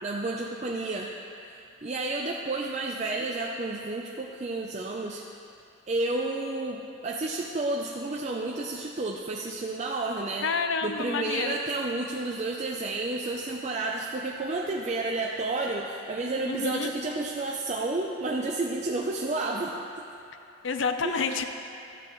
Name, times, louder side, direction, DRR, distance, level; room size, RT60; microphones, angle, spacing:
voice 1, 0.0-1.1 1.4-5.2 5.9-10.5 10.8-19.8 21.0-21.4, right 2 dB, 35° right, -1 dB, 0.4 m, -31 dB
voice 2, 10.4-11.5 16.4-16.9 20.6-21.4, left 5 dB, 65° left, 7 dB, 0.5 m, -29 dB
13.0 x 9.4 x 3.0 m, 2.7 s
head